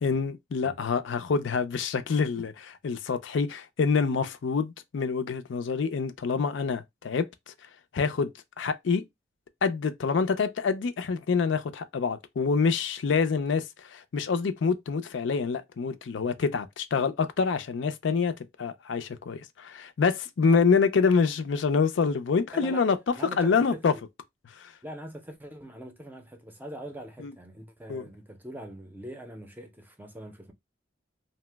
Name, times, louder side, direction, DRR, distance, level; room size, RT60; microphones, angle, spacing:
voice 1, 0.0-7.5 7.9-8.3 8.6-9.0 9.6-23.0 23.4-23.9 24.6-24.7 27.2-27.3 27.9-28.0, left 5 dB, 85° left, 0.4 m, -26 dB
voice 2, 22.5-22.9 23.1-24.0 24.8-30.5, equal, 10° right, 0.5 m, -42 dB
2.8 x 2.0 x 3.3 m
head